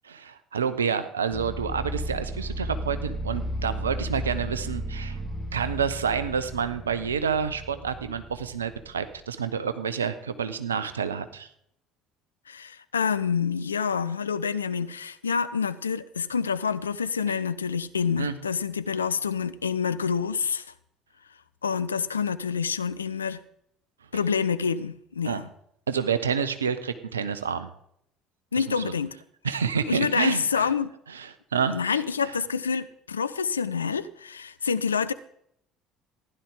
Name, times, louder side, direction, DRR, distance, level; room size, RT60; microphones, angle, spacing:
voice 1, 0.0-5.2 5.5-11.5 18.2-18.4 25.2-25.4 25.9-27.7 28.5-28.9 29.4-30.7 31.1-32.0, right 6 dB, 80° right, 12 dB, 0.7 m, -29 dB
sound 1, 1.3-9.2, equal, 5° right, 2.0 m, -34 dB
voice 2, 12.5-20.7 21.6-23.4 24.1-25.5 28.5-29.2 29.9-30.9 31.7-35.1, left 6 dB, 80° left, 13 dB, 0.4 m, -27 dB
15.0 x 11.0 x 3.8 m, 0.71 s
figure-of-eight pair, 55°, 0 cm